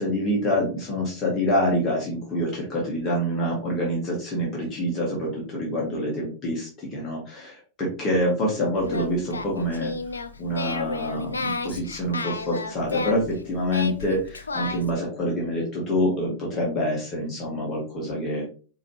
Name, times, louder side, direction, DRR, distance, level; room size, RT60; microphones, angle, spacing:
voice 1, 0.0-9.9 10.4-18.5, equal, 30° left, -3 dB, 1.4 m, -26 dB
Singing, 8.7-15.0, left 3 dB, 75° left, 0.4 m, -32 dB
4.8 x 2.8 x 3.0 m, 0.38 s
figure-of-eight pair, 90°, 0 cm